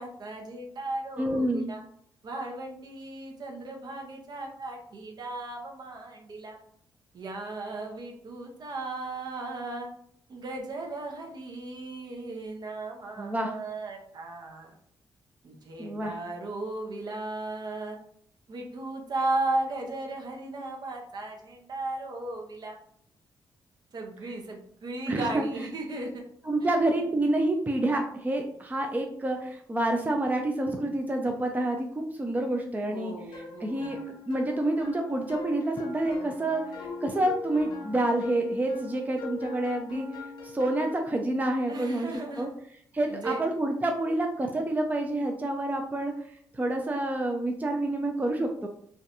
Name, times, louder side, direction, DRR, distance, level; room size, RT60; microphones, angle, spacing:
voice 1, 0.0-1.8 2.2-6.6 7.1-9.9 10.3-14.7 15.4-18.0 18.5-22.8 23.9-26.2 32.9-34.0 41.7-42.5 43.1-43.4, right 2 dB, 55° right, 2 dB, 0.7 m, -36 dB
voice 2, 1.2-1.7 13.2-13.5 15.8-16.1 25.1-25.4 26.5-31.9 32.1-40.1 40.4-42.1 42.4-42.5 42.9-46.1 46.5-48.7, right 1 dB, 20° right, 3 dB, 0.4 m, -28 dB
Sad Baloon, 33.3-41.0, left 4 dB, 65° left, 0.6 m, -41 dB
2.5 x 2.2 x 2.5 m, 0.64 s
supercardioid pair, 55°, 8 cm